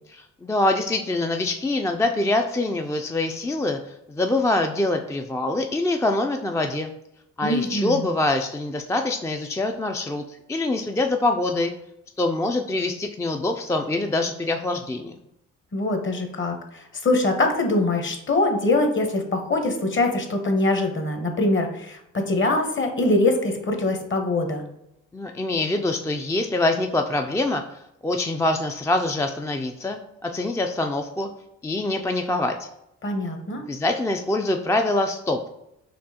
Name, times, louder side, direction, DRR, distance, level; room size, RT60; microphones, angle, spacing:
voice 1, 0.1-6.9 7.4-11.7 12.2-15.2 25.1-31.3 31.6-32.7 33.7-35.4, left 2 dB, 10° left, 4 dB, 0.3 m, -25 dB
voice 2, 7.4-8.1 15.7-24.6 33.0-33.6, left 2 dB, 35° left, 5 dB, 1.0 m, -23 dB
4.4 x 2.8 x 2.8 m, 0.83 s
supercardioid pair, 50°, 33 cm